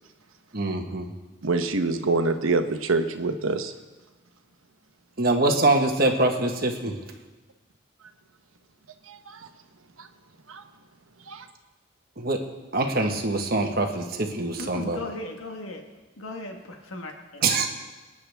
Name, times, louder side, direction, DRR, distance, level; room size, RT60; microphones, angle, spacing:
voice 1, 0.5-1.1 5.2-7.0 12.2-12.5 12.7-15.0 17.4-17.7, right 2 dB, 45° right, 4 dB, 1.3 m, -24 dB
voice 2, 1.4-3.7 9.1-9.5 10.0-10.1 10.5-10.6 11.3-11.5, right 3 dB, 80° right, 7 dB, 1.0 m, -26 dB
voice 3, 14.6-15.8 16.2-17.4, left 2 dB, 85° left, 3 dB, 1.4 m, -37 dB
25.5 x 9.8 x 3.5 m, 1.2 s
head